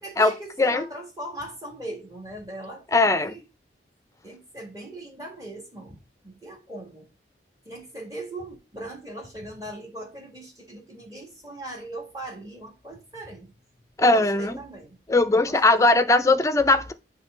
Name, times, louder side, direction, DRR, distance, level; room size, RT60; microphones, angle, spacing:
voice 1, 0.0-3.4 4.2-6.0 6.2-7.1 7.7-13.5 14.0-15.0 15.3-15.9, right 1 dB, 20° right, 1.8 m, -39 dB
voice 2, 2.9-3.3 14.0-14.6 15.1-16.9, left 2 dB, 15° left, 0.5 m, -19 dB
7.6 x 3.3 x 5.5 m
head